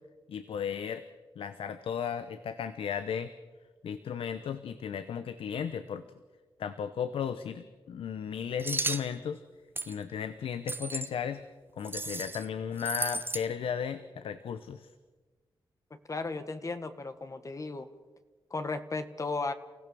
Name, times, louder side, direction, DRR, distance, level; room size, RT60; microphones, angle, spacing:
voice 1, 0.3-1.0 1.4-3.3 3.8-6.1 6.6-9.4 9.9-11.4 11.8-14.9, left 8 dB, 90° left, 11 dB, 0.9 m, -35 dB
sound 1, 8.6-9.1 9.8-10.0 10.7-11.1 11.8-12.4 12.8-13.4, right 2 dB, 25° right, 1.1 m, -34 dB
voice 2, 15.9-17.9 18.5-19.5, left 3 dB, 35° left, 10 dB, 1.6 m, -35 dB
30.0 x 16.0 x 7.0 m, 1.3 s
cardioid pair, 85°, 9 cm